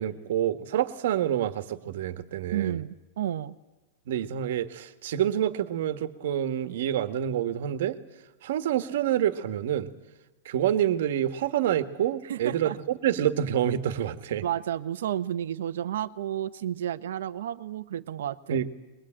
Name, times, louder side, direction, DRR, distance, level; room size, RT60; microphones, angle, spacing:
voice 1, 0.0-2.8 4.1-8.0 8.4-9.9 10.4-14.4 18.5-18.8, right 10 dB, 65° right, 10 dB, 1.6 m, -27 dB
voice 2, 2.5-3.6 12.2-12.8 14.4-18.6, right 11 dB, 85° right, 12 dB, 1.0 m, -31 dB
22.0 x 22.0 x 8.9 m, 1.1 s
supercardioid pair, 165°, 0 cm